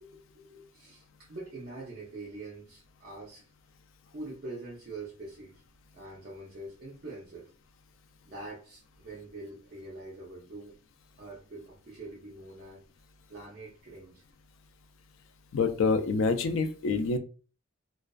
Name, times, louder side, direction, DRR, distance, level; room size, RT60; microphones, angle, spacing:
voice 1, 0.0-3.5 4.0-5.6 5.9-7.5 8.2-10.8 11.2-12.8 13.3-14.2, right 2 dB, 45° right, -5 dB, 0.6 m, -44 dB
voice 2, 15.5-17.2, left 4 dB, 65° left, 8 dB, 0.3 m, -26 dB
2.4 x 2.3 x 2.2 m, 0.38 s
head